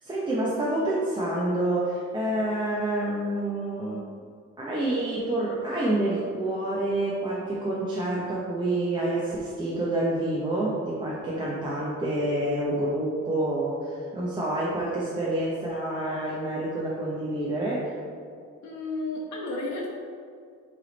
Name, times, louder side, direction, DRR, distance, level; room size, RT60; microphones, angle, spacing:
voice 1, 0.0-4.0 4.6-17.9, right 1 dB, 15° right, -6 dB, 0.7 m, -28 dB
voice 2, 18.6-19.9, left 2 dB, 70° left, -3 dB, 0.9 m, -32 dB
7.9 x 3.5 x 4.0 m, 2.2 s
cardioid pair, 155°, 29 cm